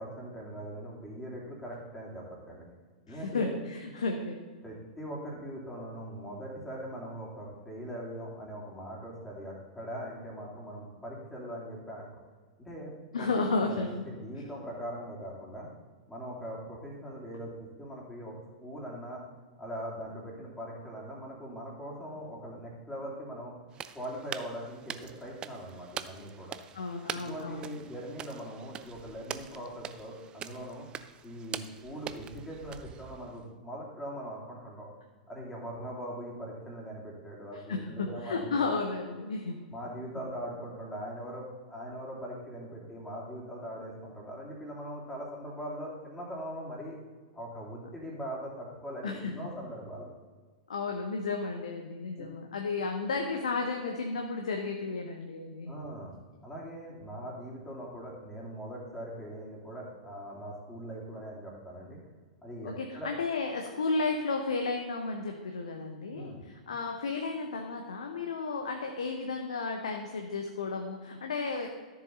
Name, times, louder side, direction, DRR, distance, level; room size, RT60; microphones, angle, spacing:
voice 1, 0.0-2.6 3.0-3.5 4.6-12.2 12.6-15.7 16.1-18.3 18.6-19.2 19.6-23.5 23.9-26.5 27.1-30.9 31.2-34.9 35.3-38.8 39.7-47.0 47.3-50.1 52.2-52.3 55.7-56.1 56.4-62.0 62.4-63.1 66.1-66.4, equal, 10° left, -4 dB, 3.1 m, -41 dB
voice 2, 3.1-4.4 13.1-14.0 26.7-27.8 37.5-39.6 40.1-40.2 49.0-49.5 50.7-55.7 62.6-71.7, left 3 dB, 65° left, 3 dB, 1.0 m, -33 dB
sound 1, 23.7-33.5, right 9 dB, 25° right, 0.4 m, -44 dB
13.0 x 7.2 x 4.0 m, 1.4 s
figure-of-eight pair, 95°, 4 cm